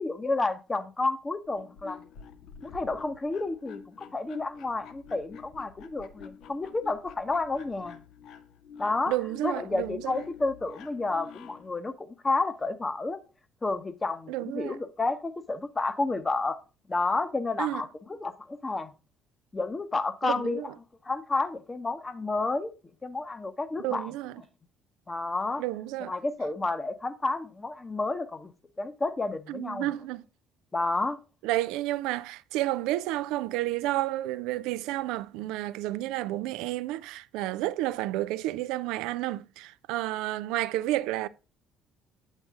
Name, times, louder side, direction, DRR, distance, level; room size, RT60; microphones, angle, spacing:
voice 1, 0.0-2.0 2.6-8.0 8.8-9.1 9.4-13.2 13.6-16.6 16.9-18.9 19.5-20.7 21.0-22.7 23.0-24.1 25.1-25.6 26.0-28.5 28.8-29.9 30.7-31.2, left 3 dB, 25° left, 0.9 m, -30 dB
sound 1, 1.4-11.7, left 7 dB, 65° left, 0.6 m, -48 dB
voice 2, 9.1-10.2 14.3-14.8 17.6-17.8 20.2-20.7 23.8-24.4 25.6-26.1 29.5-30.3 31.4-41.3, right 16 dB, 70° right, 0.3 m, -31 dB
8.0 x 7.3 x 2.4 m
hypercardioid pair, 55°, 0 cm